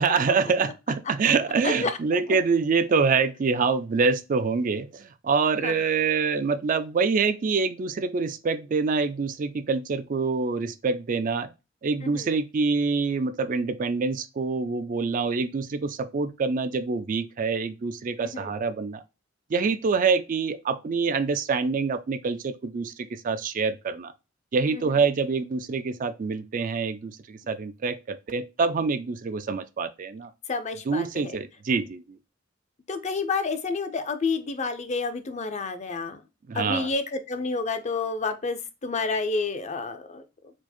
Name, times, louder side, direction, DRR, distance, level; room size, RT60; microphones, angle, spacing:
voice 1, 0.0-11.5 11.8-19.0 19.5-24.1 24.5-30.3 30.9-32.2 36.5-36.9, right 4 dB, 45° right, 0.4 m, -26 dB
voice 2, 1.6-2.2 5.6-5.9 12.0-12.3 18.2-18.5 24.7-24.9 30.5-31.4 32.9-36.2 36.5-40.2, left 4 dB, 35° left, 0.6 m, -30 dB
4.5 x 2.4 x 4.2 m
head